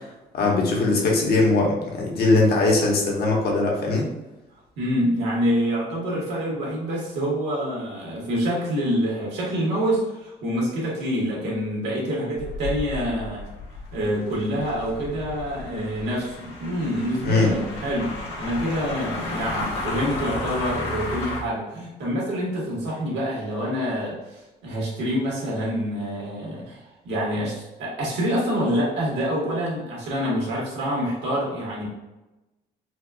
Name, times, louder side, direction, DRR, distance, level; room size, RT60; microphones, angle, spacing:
voice 1, 0.3-4.1 17.2-17.5, left 3 dB, 65° left, -1 dB, 1.0 m, -20 dB
voice 2, 4.8-13.5 13.9-31.9, equal, 85° right, -5 dB, 1.4 m, -26 dB
sound 1, 12.4-21.4, left 2 dB, 80° left, 1.2 m, -33 dB
4.2 x 2.4 x 2.3 m, 1.0 s
cardioid pair, 90°, 18 cm